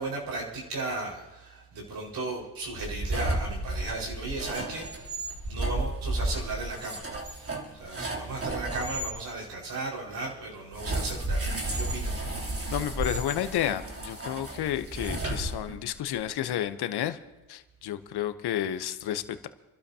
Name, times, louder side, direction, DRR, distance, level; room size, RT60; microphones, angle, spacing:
voice 1, 0.0-4.9 5.4-12.2 12.5-12.7, right 3 dB, 70° right, -3 dB, 5.2 m, -36 dB
sound 1, 2.7-9.1 10.7-16.0, right 1 dB, 35° right, 3.3 m, -33 dB
voice 2, 12.7-17.2 17.5-19.5, left 11 dB, 70° left, 11 dB, 1.0 m, -31 dB
27.5 x 12.0 x 2.9 m, 1.1 s
supercardioid pair, 60°, 40 cm